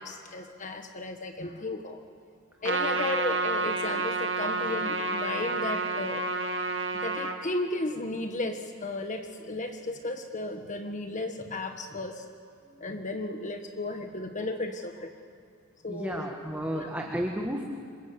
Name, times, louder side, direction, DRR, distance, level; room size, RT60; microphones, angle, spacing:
voice 1, 0.0-2.0 2.6-6.3 6.9-12.2 12.8-15.1 15.8-16.3 16.7-16.9, left 2 dB, 35° left, 6 dB, 1.5 m, -34 dB
Trumpet, 2.6-7.4, right 3 dB, 60° right, 2.1 m, -29 dB
voice 2, 15.9-17.6, equal, 10° right, 0 dB, 1.9 m, -32 dB
28.0 x 26.5 x 8.0 m, 2.2 s
head